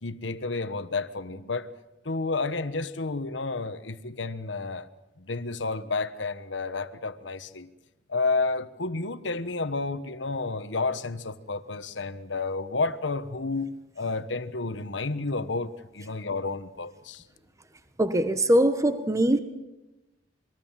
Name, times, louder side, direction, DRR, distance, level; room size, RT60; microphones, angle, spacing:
voice 1, 0.0-1.7 2.0-4.9 5.2-7.7 8.1-17.2, left 3 dB, 85° left, 1.3 m, -31 dB
voice 2, 18.0-19.4, right 1 dB, 20° right, 1.2 m, -22 dB
27.5 x 21.5 x 7.5 m
head